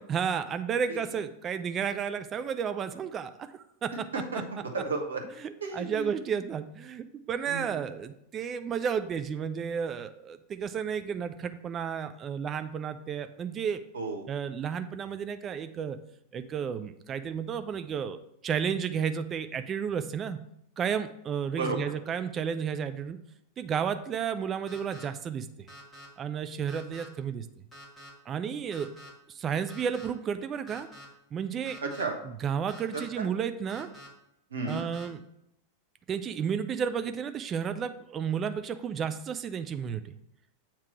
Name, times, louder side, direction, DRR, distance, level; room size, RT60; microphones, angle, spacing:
voice 1, 0.1-4.0 5.4-13.8 14.3-16.0 16.3-20.4 20.8-23.2 23.6-25.5 26.2-27.5 28.3-28.9 29.3-30.9 31.3-31.8 32.2-33.9 34.6-35.2 36.1-40.1, right 7 dB, 25° right, 9 dB, 0.3 m, -32 dB
voice 2, 4.1-5.2 5.6-6.1 7.5-7.7 13.9-14.3 21.6-21.9 31.8-32.2 32.9-33.3 34.5-34.8, right 3 dB, 70° right, 2 dB, 0.9 m, -33 dB
sound 1, 24.7-25.0 25.7-26.1 26.7-27.1 27.7-28.1 28.7-29.1 29.7-30.1 30.7-31.0 31.6-32.0 32.7-33.1 33.7-34.1 34.7-35.1, equal, 15° left, 1.6 m, -48 dB
7.5 x 2.9 x 4.6 m, 0.77 s
figure-of-eight pair, 90°, 0 cm